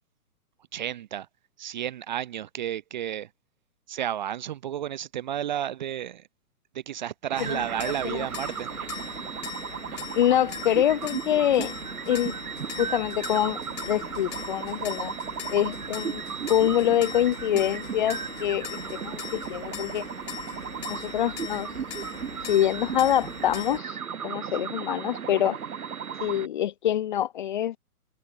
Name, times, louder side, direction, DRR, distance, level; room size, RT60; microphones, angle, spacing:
voice 1, 0.7-1.3 1.6-3.3 3.9-6.3 6.7-8.7, right 10 dB, 30° right, 0.6 m, -32 dB
sound 1, 7.3-26.5, right 7 dB, 65° right, 1.4 m, -36 dB
sound 2, 7.4-23.8, left 8 dB, 50° left, 2.7 m, -41 dB
voice 2, 7.4-8.2 10.2-11.7 12.1-12.3 12.8-13.6 13.9-15.1 15.5-16.2 16.5-20.1 20.9-21.7 22.5-24.0 24.2-25.6 26.2-27.8, left 11 dB, 30° left, 0.7 m, -25 dB
figure-of-eight pair, 125°, 46 cm